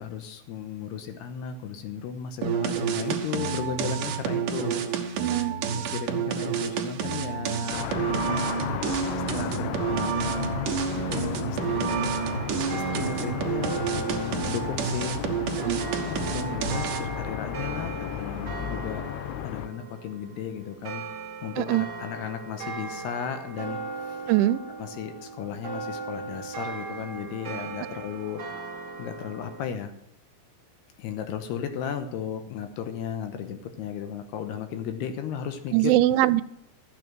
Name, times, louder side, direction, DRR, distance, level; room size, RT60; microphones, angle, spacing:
voice 1, 0.0-5.3 5.7-8.5 9.3-12.1 12.7-15.2 16.0-21.0 21.4-24.2 24.8-28.4 29.0-29.9 31.0-35.9, left 8 dB, 75° left, 8 dB, 2.8 m, -35 dB
sound 1, 2.4-17.2, right 7 dB, 65° right, 2.2 m, -29 dB
voice 2, 5.2-5.6 15.6-15.8 21.6-21.9 24.3-24.6 35.7-36.4, right 15 dB, 90° right, 16 dB, 3.0 m, -22 dB
sound 2, 7.7-19.7, left 13 dB, 90° left, 2.3 m, -34 dB
sound 3, 11.6-29.6, right 4 dB, 50° right, 1.2 m, -38 dB
13.5 x 8.5 x 6.1 m, 0.77 s
omnidirectional pair, 5.3 m